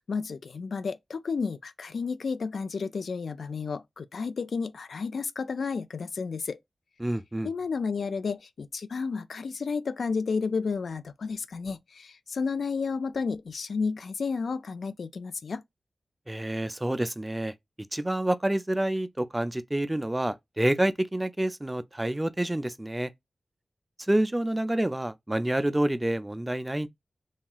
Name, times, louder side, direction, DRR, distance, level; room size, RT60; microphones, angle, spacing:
voice 1, 0.0-6.6 7.4-15.6, left 5 dB, 75° left, 0.3 m, -32 dB
voice 2, 7.0-7.5 16.3-17.5 17.9-23.1 24.0-26.9, right 1 dB, 15° right, 0.3 m, -28 dB
3.0 x 2.8 x 2.2 m
wide cardioid pair, 90°, 0 cm